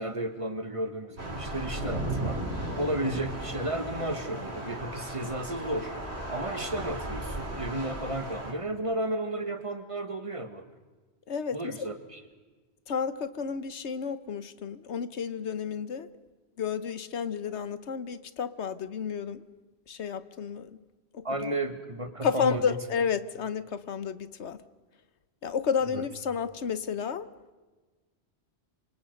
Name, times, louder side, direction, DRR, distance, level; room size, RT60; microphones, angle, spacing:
voice 1, 0.0-2.4 2.7-6.0 6.3-10.6 11.5-12.2 21.2-22.7 25.9-26.0, right 1 dB, 30° right, 1.7 m, -33 dB
Thunder / Rain, 1.2-8.5, right 1 dB, 70° right, 4.3 m, -35 dB
voice 2, 11.3-11.6 12.9-16.1 16.6-19.4 19.9-20.7 21.1-21.2 22.2-24.6 25.4-27.3, left 6 dB, 85° left, 1.3 m, -31 dB
27.0 x 25.5 x 5.4 m
omnidirectional pair, 1.1 m